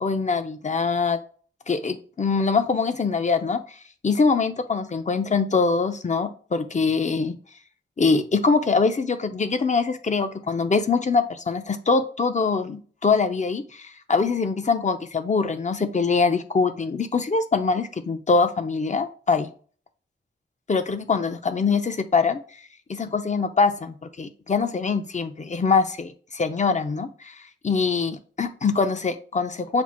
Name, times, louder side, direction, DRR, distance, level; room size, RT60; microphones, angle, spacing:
voice 1, 0.0-1.2 1.7-3.8 4.0-7.4 8.0-19.5 20.7-22.4 22.9-27.4 27.6-29.8, left 4 dB, 35° left, 9 dB, 0.5 m, -23 dB
6.0 x 2.0 x 4.2 m, 0.43 s
cardioid pair, 60°, 20 cm